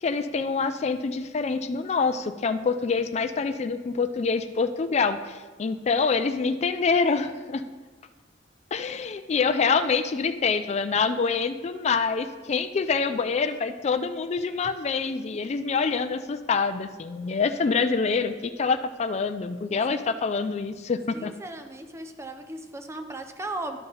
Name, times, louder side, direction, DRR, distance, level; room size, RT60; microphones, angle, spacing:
voice 1, 0.0-7.6 8.7-21.3, left 5 dB, 35° left, 9 dB, 0.4 m, -26 dB
voice 2, 21.1-23.8, right 2 dB, 15° right, 6 dB, 0.6 m, -37 dB
11.0 x 5.8 x 4.0 m, 1.3 s
head